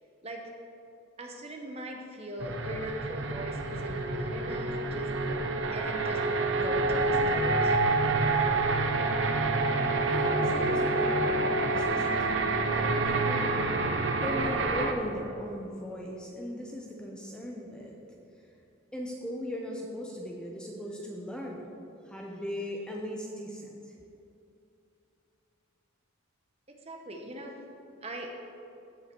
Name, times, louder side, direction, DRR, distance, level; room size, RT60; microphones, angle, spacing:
voice 1, 1.2-5.1 5.7-6.2 6.5-7.8 26.7-27.6 28.0-28.3, right 1 dB, 30° right, 2 dB, 0.9 m, -40 dB
sound 1, 2.4-14.9, right 2 dB, 55° right, 0.8 m, -27 dB
voice 2, 10.0-13.5 13.9-18.0 18.9-21.7 22.1-24.0, equal, 5° left, -1 dB, 0.7 m, -39 dB
15.5 x 5.6 x 4.5 m, 2.7 s
head